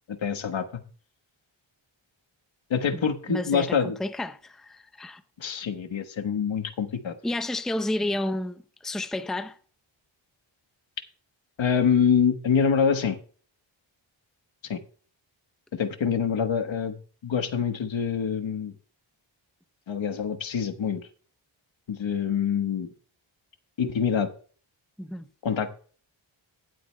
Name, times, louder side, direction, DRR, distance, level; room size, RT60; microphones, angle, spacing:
voice 1, 0.1-0.8 2.7-4.0 5.4-7.1 11.6-13.2 14.6-14.8 15.7-17.0 17.2-18.7 19.9-21.0 21.9-22.9 23.8-24.3 25.4-25.7, left 7 dB, 70° left, 1.3 m, -25 dB
voice 2, 2.9-5.2 7.2-9.6 25.0-25.3, left 1 dB, ahead, 0.6 m, -31 dB
19.0 x 7.7 x 2.2 m
cardioid pair, 75°, 48 cm